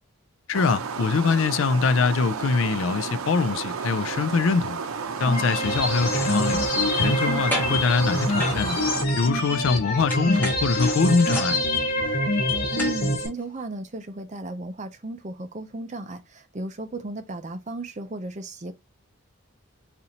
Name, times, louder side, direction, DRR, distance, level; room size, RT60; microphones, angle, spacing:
voice 1, 0.5-4.8 5.2-6.6 6.9-8.8 9.2-11.6, left 4 dB, 70° left, 0.4 m, -23 dB
sound 1, 0.5-9.1, right 5 dB, 90° right, 0.6 m, -32 dB
sound 2, 5.3-13.3, left 1 dB, 45° left, 1.2 m, -25 dB
sound 3, 5.6-5.7 6.0-7.2 7.5-7.9 8.4-9.8 10.1-13.0 13.4-13.5, left 1 dB, 10° left, 1.5 m, -34 dB
voice 2, 12.7-18.7, right 2 dB, 35° right, 0.6 m, -35 dB
4.2 x 4.1 x 2.8 m
head